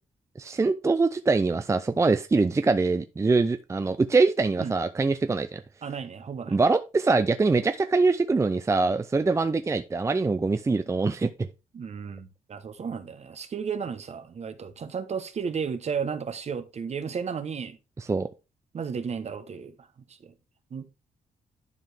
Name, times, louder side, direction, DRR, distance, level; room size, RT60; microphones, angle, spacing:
voice 1, 0.4-5.6 6.5-11.3 18.0-18.3, right 3 dB, 20° right, 0.5 m, -23 dB
voice 2, 5.8-6.6 11.7-17.8 18.7-19.9 20.2-20.3 20.7-20.9, right 6 dB, 50° right, 1.1 m, -33 dB
11.0 x 4.8 x 3.4 m
cardioid pair, 100°, 14 cm